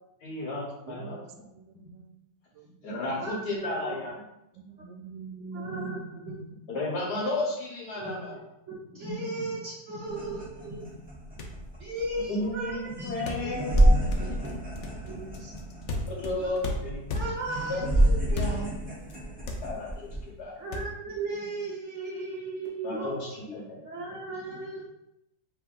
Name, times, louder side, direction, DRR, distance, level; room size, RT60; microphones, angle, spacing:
voice 1, 0.0-1.2 2.8-4.2 6.7-8.4 12.3-14.6 16.1-17.1 17.7-17.8 18.1-18.9 19.6-20.6 22.8-23.8, left 2 dB, 60° left, -3 dB, 1.7 m, -33 dB
voice 2, 0.9-2.2 2.5-3.3 4.5-6.0 6.4-6.6 7.2-7.3, right 3 dB, 90° right, 6 dB, 1.3 m, -45 dB
voice 3, 3.2-3.9 5.5-6.0 6.2-6.6 8.0-8.2 8.7-10.9 11.8-13.5 15.1-16.0 16.4-16.6 17.1-18.6 19.2-19.4 20.6-23.2 23.5-23.6 23.8-24.8, right 2 dB, 45° right, -4 dB, 1.1 m, -36 dB
sound 1, 10.0-20.3, right 1 dB, 5° right, 0.8 m, -28 dB
sound 2, 11.1-11.2 11.4-11.7 13.3-17.6 18.3-18.8 19.1-19.2 19.5-20.1 20.7-20.8, left 1 dB, 85° left, 0.6 m, -34 dB
5.5 x 3.6 x 2.5 m, 0.83 s
omnidirectional pair, 2.0 m